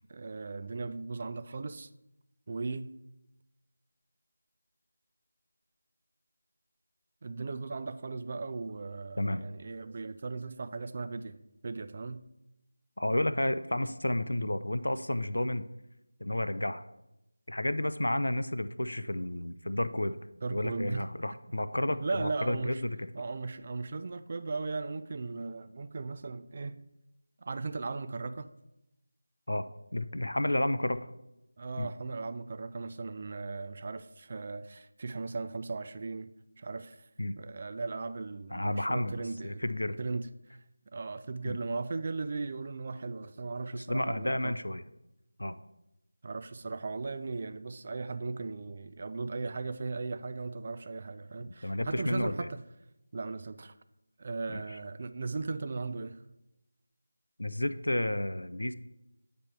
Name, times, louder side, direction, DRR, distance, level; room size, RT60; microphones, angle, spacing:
voice 1, 0.1-1.9 2.5-2.9 7.2-12.2 20.4-21.1 21.9-22.8 23.1-26.8 27.4-28.5 31.6-36.3 36.6-37.1 37.3-39.6 40.0-40.6 40.9-44.6 46.2-52.6 53.1-53.7 54.2-56.2, right 3 dB, 35° right, 0.3 m, -37 dB
voice 2, 13.0-15.6 16.2-16.8 17.5-20.2 20.5-23.0 29.5-29.7 29.9-31.1 31.8-31.9 37.2-37.3 38.5-40.0 41.5-41.6 43.7-44.8 45.4-45.6 51.6-52.5 54.5-54.6 57.4-58.7, left 1 dB, 75° left, 0.4 m, -31 dB
8.5 x 3.4 x 4.4 m
figure-of-eight pair, 165°, 0 cm